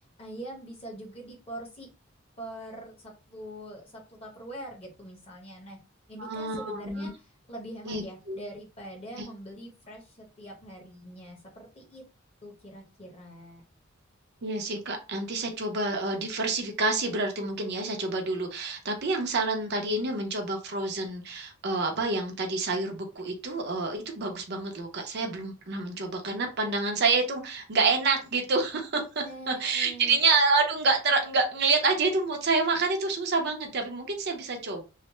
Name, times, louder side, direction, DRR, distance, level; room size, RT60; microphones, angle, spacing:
voice 1, 0.2-1.9 2.4-5.8 6.1-7.1 7.5-12.0 12.4-13.6 29.2-30.2, right 1 dB, 30° left, 0 dB, 1.0 m, -43 dB
voice 2, 6.2-7.1 7.8-8.4 9.2-9.3 14.4-34.8, right 3 dB, 50° right, 3 dB, 0.6 m, -28 dB
3.2 x 2.0 x 2.9 m, 0.31 s
head